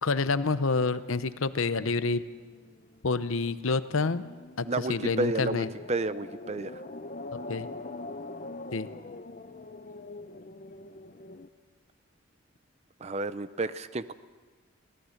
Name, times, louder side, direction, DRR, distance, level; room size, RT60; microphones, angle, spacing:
voice 1, 0.0-2.2 3.0-4.2 4.6-5.7 7.3-7.7 8.7-8.9, left 3 dB, 75° left, 13 dB, 0.8 m, -28 dB
sound 1, 2.2-11.5, left 2 dB, 40° left, 0.6 m, -43 dB
voice 2, 4.7-6.8 13.0-14.1, right 2 dB, 30° right, 14 dB, 0.6 m, -31 dB
23.5 x 17.5 x 6.6 m, 1.4 s
head